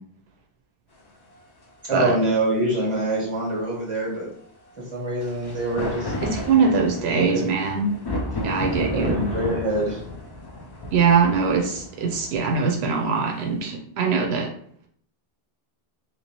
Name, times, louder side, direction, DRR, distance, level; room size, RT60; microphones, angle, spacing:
sound 1, 1.3-1.4 5.2-13.5, left 1 dB, 35° left, 0.4 m, -32 dB
voice 1, 1.9-4.3 4.8-6.1 7.1-7.4 8.9-9.0 9.3-10.0, right 1 dB, 30° right, -5 dB, 1.5 m, -25 dB
voice 2, 6.3-7.8 8.4-9.2 10.9-14.5, right 5 dB, 85° right, 1 dB, 0.8 m, -22 dB
3.3 x 2.8 x 2.9 m, 0.63 s
omnidirectional pair, 1.0 m